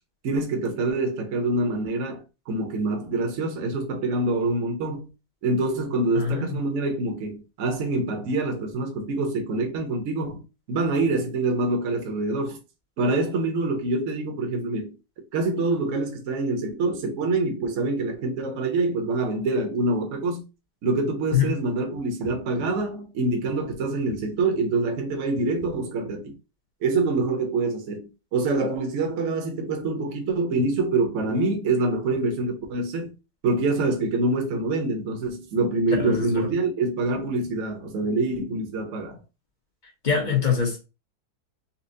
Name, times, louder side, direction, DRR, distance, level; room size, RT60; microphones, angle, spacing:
voice 1, 0.2-5.1 5.4-12.6 13.0-14.9 15.3-20.4 20.8-26.3 26.8-33.1 33.4-39.2, right 2 dB, 55° right, 1.0 m, -25 dB
voice 2, 6.1-6.5 21.3-21.5 36.0-36.3 40.0-40.8, left 7 dB, 35° left, 0.8 m, -23 dB
4.3 x 2.1 x 2.6 m
omnidirectional pair, 2.0 m